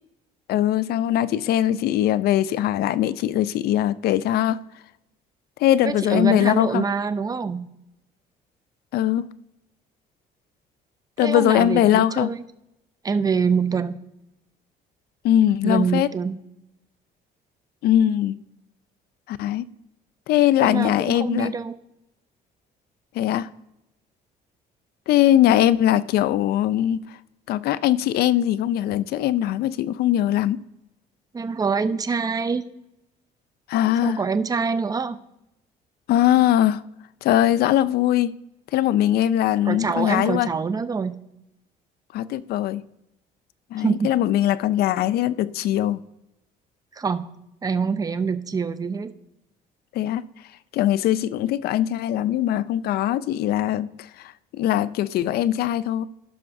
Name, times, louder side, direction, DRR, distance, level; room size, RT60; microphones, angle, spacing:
voice 1, 0.5-4.6 5.6-6.9 8.9-9.3 11.2-12.3 15.2-16.1 17.8-18.4 19.3-19.6 20.3-21.5 23.1-23.5 25.1-27.0 27.5-30.6 33.7-34.2 36.1-36.8 37.2-38.3 38.7-40.5 42.1-42.8 43.7-46.0 49.9-50.3 50.7-56.0, left 12 dB, 65° left, 0.4 m, -21 dB
voice 2, 5.8-7.7 11.2-12.4 13.0-14.0 15.6-16.4 20.6-20.9 21.2-21.8 31.3-32.6 34.0-35.2 39.7-41.1 43.8-44.1 47.0-47.3 47.6-49.1, right 5 dB, 20° right, 0.5 m, -25 dB
15.5 x 5.8 x 2.6 m
cardioid pair, 110°, 17 cm